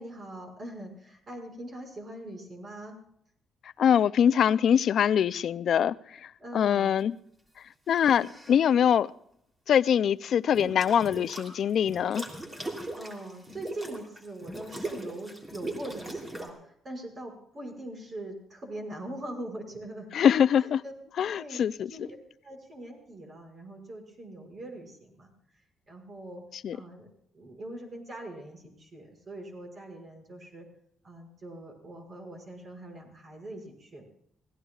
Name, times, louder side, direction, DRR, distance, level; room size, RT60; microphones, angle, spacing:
voice 1, 0.0-3.0 6.4-6.9 10.5-10.8 13.0-16.6 16.8-20.1 20.6-20.9 21.3-22.2 22.4-25.3 25.9-26.4 26.7-27.1 27.3-30.7 31.0-34.0, right 1 dB, 40° right, 2 dB, 5.7 m, -42 dB
voice 2, 3.8-5.9 6.2-7.1 7.9-9.1 9.7-12.2 20.1-20.8 21.2-21.9 26.6-26.8, left 8 dB, 65° left, 17 dB, 0.4 m, -23 dB
sound 1, 7.9-8.6 10.5-11.5 11.9-16.5, right 1 dB, 25° right, 3.2 m, -39 dB
25.5 x 17.0 x 2.4 m, 0.69 s
cardioid pair, 90°, 0 cm